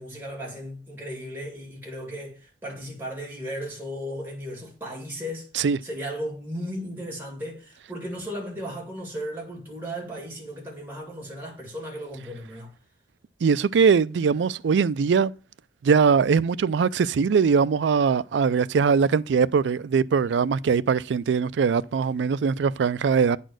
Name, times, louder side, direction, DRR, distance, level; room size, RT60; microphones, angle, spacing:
voice 1, 0.0-5.5 5.8-12.7, equal, 10° right, 2.3 m, -35 dB
voice 2, 13.4-15.3 15.8-23.4, right 6 dB, 85° right, 0.4 m, -21 dB
9.1 x 4.2 x 6.3 m
head